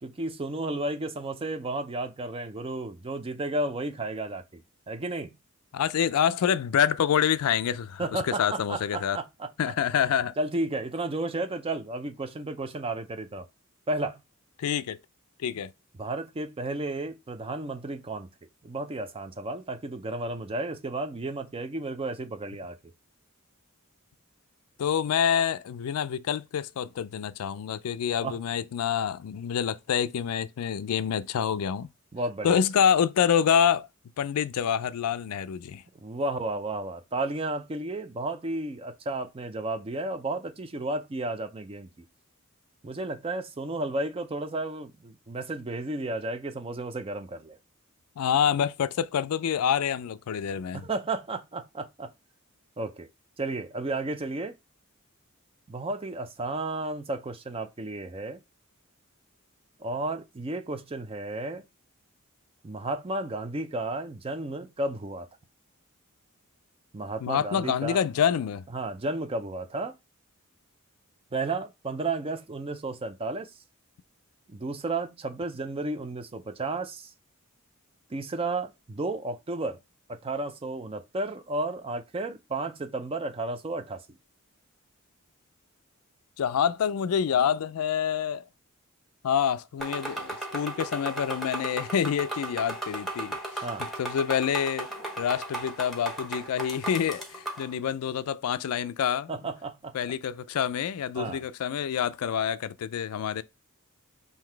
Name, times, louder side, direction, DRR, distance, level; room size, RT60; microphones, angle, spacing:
voice 1, 0.0-4.6 4.9-5.3 8.0-9.5 10.4-13.5 13.9-14.2 16.0-18.3 18.6-22.8 28.2-28.4 32.1-32.6 36.0-41.9 42.8-47.6 50.7-52.1 52.8-53.1 53.4-54.5 55.7-58.4 59.8-61.6 62.6-65.3 66.9-68.0 68.7-69.9 71.3-73.5 74.5-77.1 78.1-79.8 80.1-84.0 93.6-93.8 99.3-100.0 101.2-101.4, right 2 dB, 25° right, 0.4 m, -33 dB
voice 2, 5.7-9.2 9.6-10.3 14.6-15.0 15.4-15.7 24.8-31.9 32.4-33.9 34.2-35.8 48.2-50.9 67.2-68.6 86.4-88.4 89.2-94.9 95.2-99.3 99.9-103.4, left 8 dB, 85° left, 0.4 m, -27 dB
sound 1, 89.8-97.7, right 2 dB, ahead, 1.0 m, -36 dB
3.8 x 2.8 x 4.4 m
head